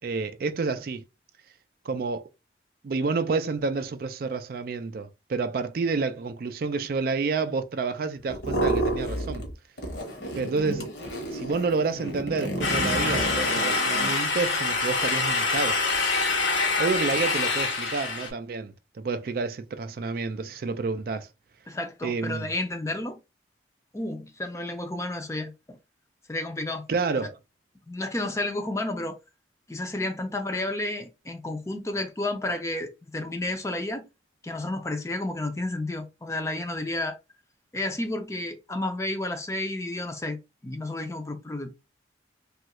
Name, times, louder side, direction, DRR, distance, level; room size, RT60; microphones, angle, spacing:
voice 1, 0.0-1.0 1.8-2.3 2.8-9.5 10.4-10.9 11.3-15.8 16.8-21.3 22.0-22.5 26.9-27.4, right 4 dB, 50° right, 0.3 m, -29 dB
sound 1, 8.3-9.5 9.8-14.1, right 1 dB, 60° left, 0.9 m, -30 dB
sound 2, 12.6-18.3, left 3 dB, 90° left, 1.0 m, -25 dB
voice 2, 21.7-23.2 23.9-25.8 26.3-26.9 27.9-29.2 29.7-34.0 34.4-37.2 37.7-41.8, left 2 dB, 15° left, 0.4 m, -31 dB
3.0 x 2.3 x 2.9 m
head